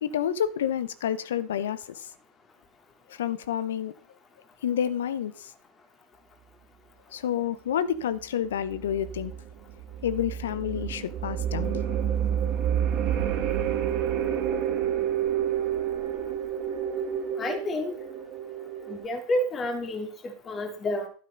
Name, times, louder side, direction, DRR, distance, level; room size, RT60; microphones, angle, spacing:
voice 1, 0.0-2.1 3.1-3.9 4.6-5.5 7.1-9.3 10.0-11.8, left 9 dB, 70° left, 1.0 m, -29 dB
sound 1, 8.7-19.0, right 9 dB, 40° right, 2.6 m, -29 dB
voice 2, 17.4-18.0 18.9-21.1, left 1 dB, 25° left, 2.9 m, -30 dB
12.5 x 9.3 x 4.0 m
figure-of-eight pair, 90°, 0 cm